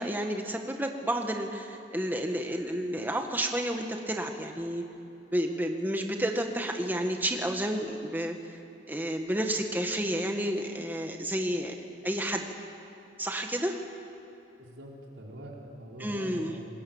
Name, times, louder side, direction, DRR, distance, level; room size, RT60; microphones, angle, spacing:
voice 1, 0.0-4.8 5.3-8.6 8.9-11.7 12.0-12.4 13.2-13.8 16.0-16.6, right 1 dB, 10° right, 3 dB, 1.5 m, -31 dB
voice 2, 14.6-16.7, right 1 dB, 75° right, -2 dB, 4.1 m, -44 dB
26.5 x 20.0 x 7.2 m, 2.9 s
head